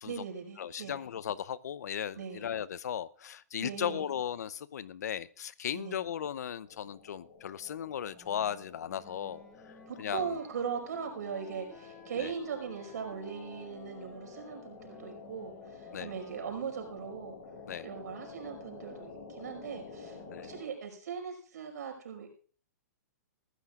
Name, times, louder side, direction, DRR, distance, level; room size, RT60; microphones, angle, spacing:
voice 1, 0.0-1.1 2.1-2.5 3.6-4.1 5.7-6.0 9.9-17.4 17.8-22.3, right 6 dB, 70° right, 4 dB, 5.3 m, -39 dB
voice 2, 0.6-9.4 10.0-10.3 12.2-12.3 15.9-16.1 17.7-17.9 20.3-20.5, left 9 dB, 70° left, 20 dB, 0.7 m, -36 dB
sound 1, 6.7-20.6, left 4 dB, 55° left, 6.3 m, -50 dB
Wind instrument woodwind instrument, 8.1-16.4, left 1 dB, 15° left, 6.9 m, -56 dB
22.0 x 14.5 x 2.5 m, 0.41 s
hypercardioid pair, 130°, 9 cm